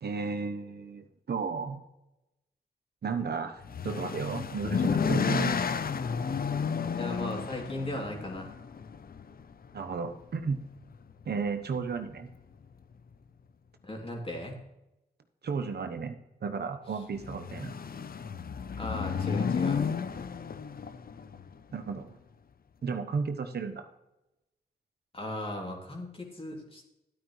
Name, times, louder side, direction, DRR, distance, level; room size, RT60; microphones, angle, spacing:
voice 1, 0.0-1.8 3.0-5.7 9.7-10.6 11.3-12.3 15.4-17.7 21.7-22.2 22.8-23.9, right 5 dB, 70° right, 7 dB, 1.0 m, -33 dB
sound 1, 3.6-9.8 10.8-11.2 11.6-11.7 12.0-12.1 17.1-21.5, left 6 dB, 60° left, 0.6 m, -32 dB
voice 2, 6.9-8.5 13.8-14.6 18.8-19.8 25.1-26.9, left 1 dB, 30° left, 0 dB, 3.0 m, -37 dB
11.5 x 9.2 x 3.2 m, 0.92 s
cardioid pair, 50°, 18 cm